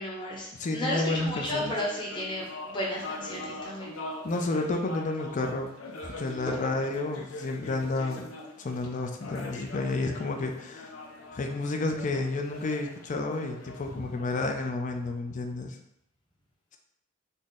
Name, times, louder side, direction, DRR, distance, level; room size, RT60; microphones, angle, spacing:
voice 1, 0.0-3.9 6.5-6.6, left 1 dB, 25° left, -6 dB, 0.8 m, -33 dB
voice 2, 0.5-1.8 4.2-5.7 6.0-8.3 8.6-10.9 11.3-15.8, left 2 dB, 40° left, 4 dB, 0.4 m, -31 dB
sound 1, 1.4-15.1, left 2 dB, 85° left, 0.6 m, -43 dB
4.1 x 2.1 x 3.6 m, 0.81 s
head